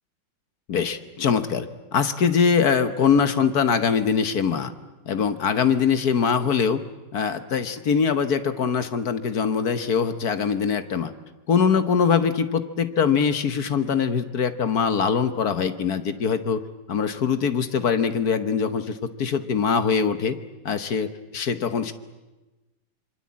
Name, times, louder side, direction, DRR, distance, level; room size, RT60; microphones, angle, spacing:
voice 1, 0.7-4.7 5.1-6.8 7.1-11.1 11.5-16.6 16.9-20.4 20.6-21.9, left 6 dB, 55° left, 11 dB, 1.5 m, -23 dB
26.5 x 24.0 x 8.6 m, 1.1 s
omnidirectional pair, 2.1 m